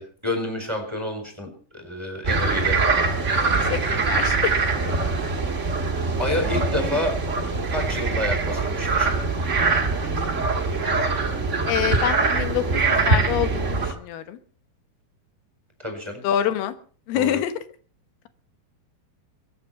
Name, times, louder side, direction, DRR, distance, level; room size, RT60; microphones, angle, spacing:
voice 1, 0.0-2.8 6.2-7.2 7.7-9.1 15.8-16.2 17.1-17.4, left 1 dB, 5° right, 4 dB, 3.9 m, -29 dB
sound 1, 2.2-13.9, right 3 dB, 35° right, 1.1 m, -23 dB
voice 2, 3.5-4.6 11.7-14.4 16.2-16.7 17.1-17.6, left 11 dB, 90° left, 11 dB, 3.1 m, -26 dB
23.0 x 9.0 x 5.7 m, 0.43 s
omnidirectional pair, 4.4 m